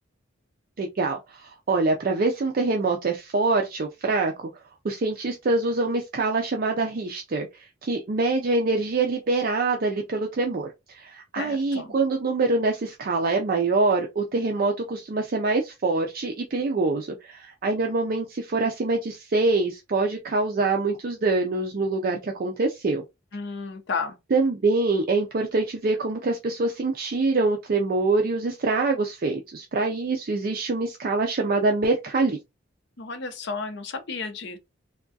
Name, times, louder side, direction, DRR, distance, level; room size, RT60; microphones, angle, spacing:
voice 1, 0.8-4.5 4.8-23.0 24.3-32.4, right 3 dB, 45° right, 0.4 m, -25 dB
voice 2, 11.4-11.9 23.3-24.2 33.0-34.6, left 4 dB, 60° left, 0.7 m, -32 dB
3.5 x 2.2 x 2.6 m
head